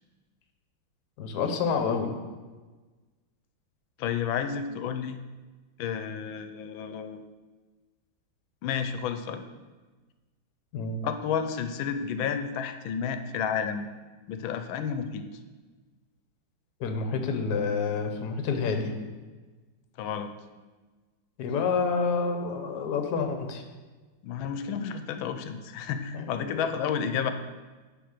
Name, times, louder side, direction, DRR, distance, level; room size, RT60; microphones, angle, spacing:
voice 1, 1.2-2.2 10.7-11.1 16.8-19.0 21.4-23.6 26.1-26.6, left 5 dB, 60° left, 6 dB, 1.3 m, -28 dB
voice 2, 4.0-5.2 5.8-7.2 8.6-9.4 11.0-13.9 14.3-15.3 20.0-20.3 24.2-27.3, left 7 dB, 85° left, 8 dB, 1.4 m, -31 dB
9.5 x 3.5 x 6.4 m, 1.3 s
omnidirectional pair, 2.1 m